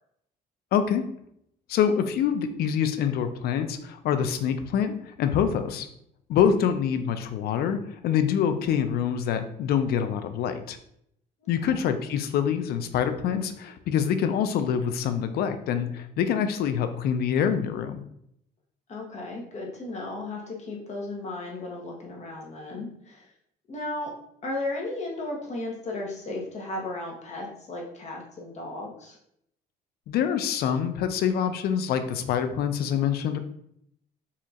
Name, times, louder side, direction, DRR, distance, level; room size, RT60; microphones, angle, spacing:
voice 1, 0.7-1.0 1.7-5.9 6.3-10.8 11.5-18.0 30.1-33.4, left 8 dB, 65° left, 9 dB, 0.5 m, -25 dB
voice 2, 11.4-11.9 18.9-23.3 23.7-24.1 24.4-29.2, left 2 dB, 40° left, -1 dB, 1.1 m, -35 dB
4.2 x 2.8 x 2.4 m, 0.72 s
cardioid pair, 110°, 17 cm